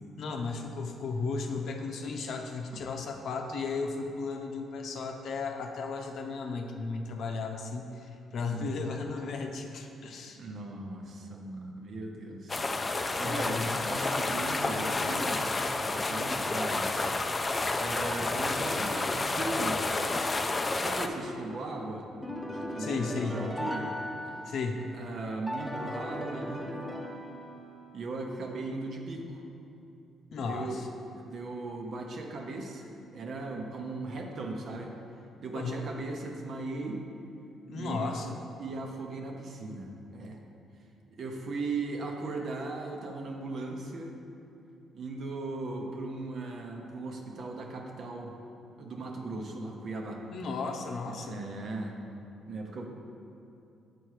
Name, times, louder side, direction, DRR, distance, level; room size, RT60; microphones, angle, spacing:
voice 1, 0.2-10.4 13.1-13.9 22.8-23.4 24.5-24.9 30.3-30.9 35.5-35.8 37.7-38.4 50.3-51.4, left 4 dB, 70° left, 3 dB, 0.7 m, -35 dB
voice 2, 8.4-8.9 10.4-12.6 13.2-15.4 15.9-17.1 17.8-19.8 20.8-22.1 22.5-23.9 24.9-26.7 27.9-29.4 30.3-30.8 31.1-32.9 33.1-34.9 35.4-37.0 37.8-38.1 38.6-40.4 41.2-44.1 44.9-48.3 48.8-50.2 51.1-52.0 52.5-52.9, right 2 dB, 60° right, 1 dB, 0.9 m, -38 dB
sound 1, 12.5-21.1, left 2 dB, 25° left, 0.4 m, -30 dB
sound 2, 22.2-24.8 25.5-27.9, left 1 dB, ahead, 1.0 m, -37 dB
7.9 x 4.5 x 4.9 m, 2.7 s
cardioid pair, 90°, 0 cm